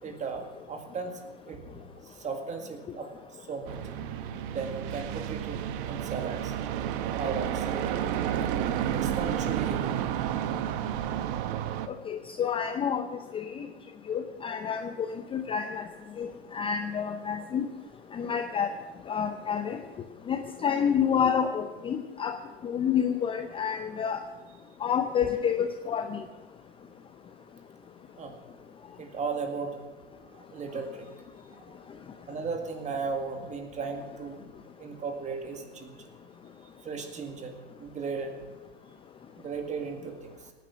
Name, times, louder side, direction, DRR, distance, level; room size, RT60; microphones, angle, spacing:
voice 1, 0.0-1.2 1.5-1.7 2.0-3.8 4.5-6.5 7.1-8.0 8.2-8.5 8.9-10.0 28.2-28.3 29.0-29.8 30.2-31.1 32.3-34.4 34.8-36.1 36.6-38.3 39.4-40.5, right 5 dB, 20° right, 5 dB, 2.1 m, -36 dB
sound 1, 3.7-11.9, right 10 dB, 50° right, 1.1 m, -31 dB
voice 2, 12.1-13.1 13.3-13.7 14.1-15.9 16.2-17.7 18.1-18.7 19.1-19.8 20.3-22.4 22.6-24.2 24.8-26.2, left 7 dB, 15° left, 8 dB, 0.6 m, -29 dB
18.0 x 9.4 x 6.1 m, 1.2 s
hypercardioid pair, 115°, 33 cm